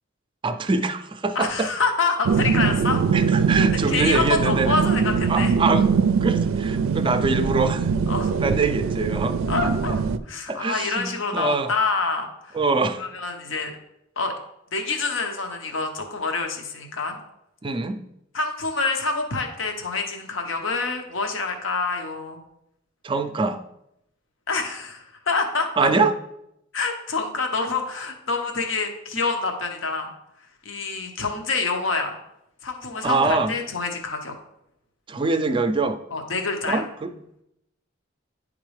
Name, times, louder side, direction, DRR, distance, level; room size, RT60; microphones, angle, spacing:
voice 1, 0.4-1.7 3.1-4.8 5.3-7.9 8.4-9.4 10.5-11.7 12.5-13.0 17.6-18.0 23.0-23.6 25.8-26.1 33.0-33.5 35.1-36.0 36.7-37.1, right 3 dB, 25° right, 9 dB, 0.4 m, -24 dB
voice 2, 1.3-3.0 3.9-5.5 8.1-8.3 9.5-9.9 10.3-12.6 13.0-13.8 14.2-14.3 14.7-17.2 18.3-22.4 24.5-25.9 26.7-30.1 30.6-32.1 32.6-34.3 36.1-36.8, left 4 dB, 70° left, 4 dB, 0.9 m, -26 dB
sound 1, 2.2-10.2, right 6 dB, 90° right, 0.4 m, -22 dB
10.0 x 3.7 x 3.2 m, 0.80 s
head